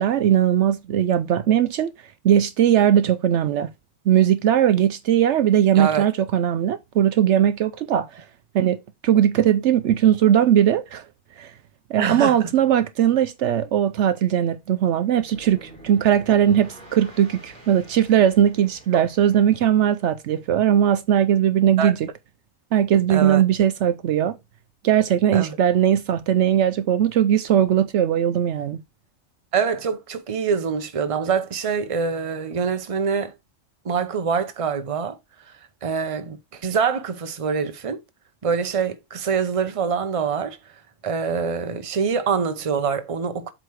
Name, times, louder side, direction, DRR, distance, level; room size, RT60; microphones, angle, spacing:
voice 1, 0.0-1.9 2.2-3.7 4.1-8.2 8.5-11.0 11.4-11.5 11.9-22.1 22.7-24.3 24.8-28.8, right 10 dB, 70° right, 0.9 m, -19 dB
voice 2, 5.7-6.1 12.0-12.5 21.8-21.9 23.1-23.4 25.3-25.6 29.5-33.3 33.8-35.2 35.8-38.0 38.4-40.6 41.0-43.5, right 6 dB, 30° right, 0.8 m, -25 dB
sound 1, 15.1-20.2, right 1 dB, 5° left, 3.7 m, -47 dB
8.1 x 3.8 x 4.7 m
omnidirectional pair, 1.3 m